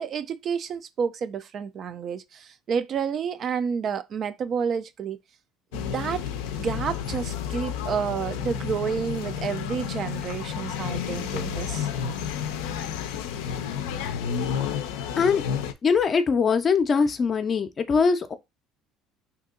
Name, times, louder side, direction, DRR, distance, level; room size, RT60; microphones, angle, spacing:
voice 1, 0.0-5.2 5.7-11.9, right 6 dB, 45° right, 0.3 m, -30 dB
sound 1, 5.7-15.7, left 8 dB, 90° left, 0.4 m, -31 dB
voice 2, 15.8-18.3, left 5 dB, 35° left, 0.5 m, -22 dB
2.8 x 2.7 x 3.7 m
supercardioid pair, 95°, 0 cm